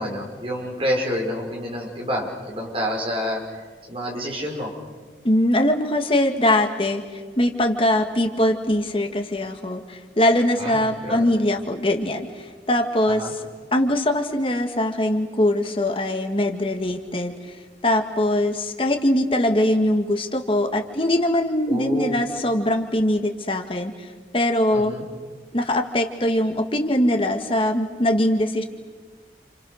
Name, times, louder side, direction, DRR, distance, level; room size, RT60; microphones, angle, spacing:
voice 1, 0.0-4.7 10.6-11.3 13.1-13.3 21.7-22.2 24.7-25.0, equal, 30° right, -1 dB, 5.5 m, -28 dB
voice 2, 5.2-7.0 7.4-13.4 13.7-17.3 17.8-24.1 24.3-24.9 25.5-28.6, left 1 dB, 30° left, 4 dB, 1.8 m, -22 dB
29.5 x 29.0 x 6.5 m, 1.5 s
head